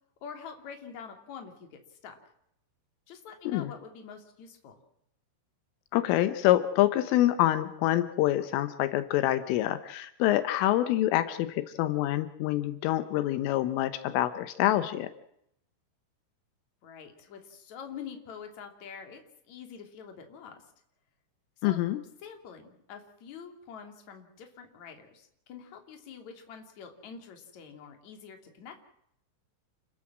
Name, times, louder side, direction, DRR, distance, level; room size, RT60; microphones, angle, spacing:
voice 1, 0.2-2.2 3.1-4.8 16.8-19.2 19.5-20.6 21.6-21.8 22.2-28.8, left 7 dB, 40° left, 5 dB, 3.7 m, -46 dB
voice 2, 5.9-15.1 21.6-22.0, left 14 dB, 80° left, 11 dB, 3.5 m, -26 dB
29.5 x 14.0 x 7.5 m, 0.75 s
omnidirectional pair, 5.8 m